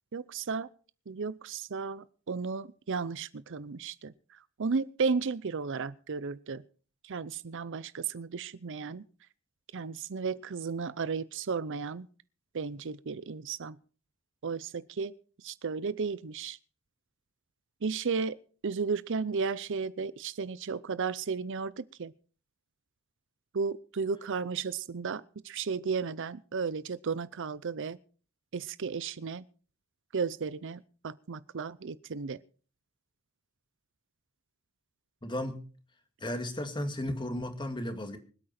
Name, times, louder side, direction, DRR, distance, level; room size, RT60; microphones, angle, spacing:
voice 1, 0.1-0.7 1.1-4.1 4.6-6.6 7.0-9.0 9.7-12.1 12.5-13.8 14.4-15.1 15.4-16.6 17.8-18.4 18.6-22.1 23.5-28.0 28.5-29.4 30.1-32.4, right 5 dB, 60° right, 17 dB, 0.6 m, -34 dB
voice 2, 35.2-35.6 36.2-38.2, left 1 dB, 20° left, 6 dB, 2.1 m, -34 dB
25.0 x 8.8 x 4.3 m, 0.39 s
head